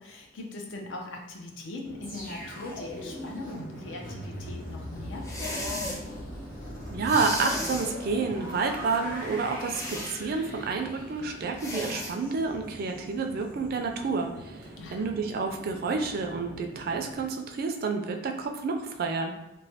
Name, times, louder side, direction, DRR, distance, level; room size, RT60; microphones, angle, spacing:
voice 1, 0.0-6.0 14.8-15.1, left 2 dB, 80° left, 1 dB, 0.6 m, -41 dB
Chatter / Fixed-wing aircraft airplane, 1.8-17.3, right 1 dB, 85° right, 0.7 m, -46 dB
sound 1, 2.0-13.1 13.5-13.7, left 1 dB, 45° left, 0.8 m, -41 dB
sound 2, 5.2-6.0 7.0-7.9 9.7-10.2 11.6-12.1, left 1 dB, 20° left, 0.5 m, -34 dB
voice 2, 6.9-14.6 14.9-19.3, right 4 dB, 55° right, 4 dB, 0.4 m, -29 dB
3.1 x 2.1 x 2.7 m, 0.96 s
head